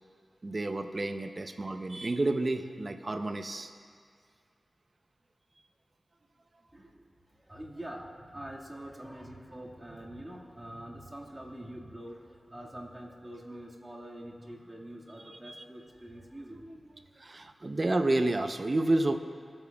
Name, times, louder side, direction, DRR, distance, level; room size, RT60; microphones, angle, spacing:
voice 1, 0.4-3.7 15.4-15.6 17.2-19.2, right 2 dB, 50° right, 8 dB, 0.7 m, -30 dB
voice 2, 6.7-7.0 7.4-17.1, right 1 dB, 25° right, -3 dB, 1.9 m, -45 dB
18.5 x 8.8 x 2.4 m, 2.2 s
cardioid pair, 40°, 0 cm